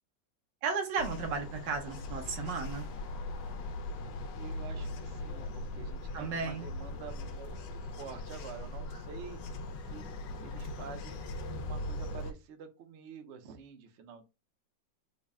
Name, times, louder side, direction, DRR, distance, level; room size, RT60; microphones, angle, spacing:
voice 1, 0.6-2.9 6.1-6.7, right 5 dB, 80° right, 4 dB, 1.5 m, -34 dB
sound 1, 1.0-12.3, left 2 dB, 80° left, 1.3 m, -40 dB
voice 2, 4.4-9.4 9.8-10.1 10.4-14.2, right 6 dB, 65° right, 7 dB, 0.7 m, -48 dB
3.9 x 2.1 x 3.4 m, 0.26 s
omnidirectional pair, 1.9 m